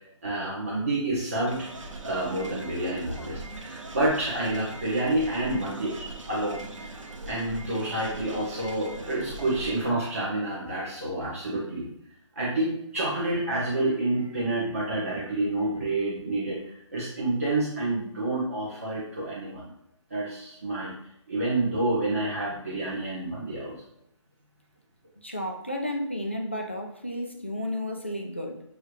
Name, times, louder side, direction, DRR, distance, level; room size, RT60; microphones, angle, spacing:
voice 1, 0.2-1.7 2.0-6.9 7.3-11.9 12.3-19.7 20.1-20.9 21.3-23.7, right 2 dB, 30° right, 0.8 m, -28 dB
sound 1, 1.5-9.9, right 2 dB, 80° right, 0.8 m, -41 dB
voice 2, 25.2-28.6, left 1 dB, 25° left, 0.3 m, -32 dB
6.5 x 2.3 x 3.1 m
hypercardioid pair, 180°, 16 cm